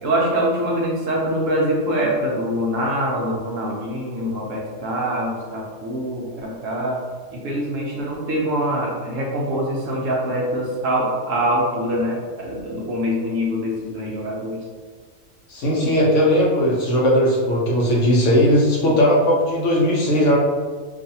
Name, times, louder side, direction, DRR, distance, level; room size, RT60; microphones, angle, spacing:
voice 1, 0.0-7.0 7.3-14.6, equal, 70° right, -3 dB, 0.9 m, -24 dB
voice 2, 15.5-20.4, equal, 65° left, -4 dB, 0.8 m, -18 dB
2.6 x 2.4 x 2.7 m, 1.5 s
omnidirectional pair, 1.5 m